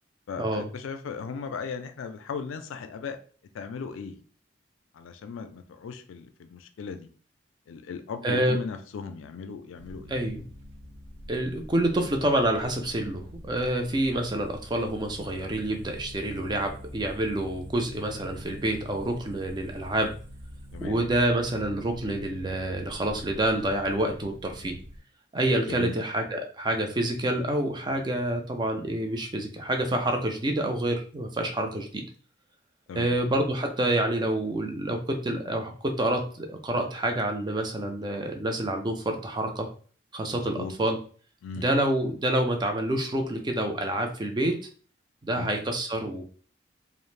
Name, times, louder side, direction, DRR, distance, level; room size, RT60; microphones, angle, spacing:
voice 1, 0.3-3.2 3.5-4.2 4.9-7.1 7.7-10.2 20.7-21.0 25.7-26.0 32.9-33.2 40.3-40.7 41.4-41.7 45.4-45.5, left 5 dB, 90° left, 8 dB, 0.4 m, -37 dB
voice 2, 8.2-8.6 10.1-10.4 11.3-20.1 20.8-24.8 25.3-32.1 32.9-39.7 40.1-41.0 41.6-44.6 45.2-46.2, right 1 dB, 20° right, 4 dB, 0.4 m, -27 dB
sound 1, 9.7-25.0, equal, 75° right, 0.6 m, -44 dB
2.4 x 2.0 x 3.1 m, 0.42 s
head